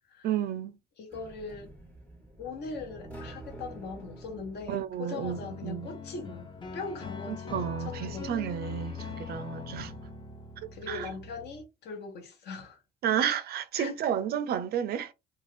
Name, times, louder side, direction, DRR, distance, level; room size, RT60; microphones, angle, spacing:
voice 1, 0.2-0.7 4.7-5.9 7.5-9.9 10.9-11.1 13.0-15.1, right 9 dB, 55° right, 0.4 m, -31 dB
voice 2, 1.0-1.7 2.4-8.3 10.7-12.8 13.8-13.9, left 4 dB, 60° left, 1.0 m, -40 dB
sound 1, 1.1-6.0, right 1 dB, 10° left, 1.0 m, -48 dB
sound 2, 5.2-11.6, left 5 dB, 25° left, 0.5 m, -41 dB
2.5 x 2.4 x 3.2 m
cardioid pair, 125°, 19 cm